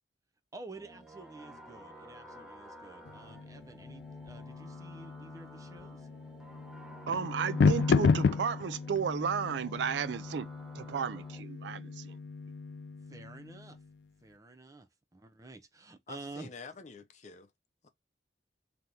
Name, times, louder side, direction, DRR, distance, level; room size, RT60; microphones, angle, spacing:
voice 1, 0.5-6.1 13.1-13.8 14.2-16.5, right 2 dB, 20° right, 0.6 m, -50 dB
sound 1, 0.7-11.4, equal, 5° right, 1.0 m, -52 dB
sound 2, 3.1-13.9, left 5 dB, 65° left, 0.3 m, -33 dB
voice 2, 7.1-10.5 10.7-12.2, right 7 dB, 80° right, 0.4 m, -33 dB
voice 3, 16.1-17.5 17.8-17.9, left 4 dB, 40° left, 0.7 m, -48 dB
3.5 x 2.9 x 3.8 m
head